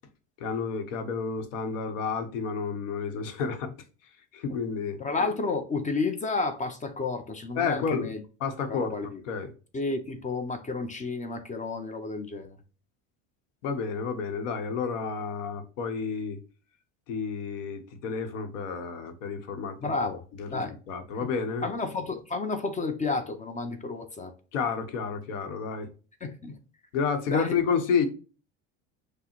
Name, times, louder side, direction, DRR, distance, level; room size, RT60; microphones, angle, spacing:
voice 1, 0.4-3.8 4.3-5.0 7.6-8.1 8.4-9.0 9.2-9.5 13.6-16.4 17.1-19.9 20.4-21.7 24.5-25.9 26.9-28.1, left 5 dB, 85° left, 0.9 m, -30 dB
voice 2, 5.0-8.2 8.7-9.2 9.7-12.6 19.8-20.2 20.5-20.7 21.2-21.3 21.6-24.3 26.2-26.6 27.3-27.6, left 3 dB, 20° left, 0.4 m, -31 dB
5.5 x 2.0 x 2.9 m
supercardioid pair, 95°, 37 cm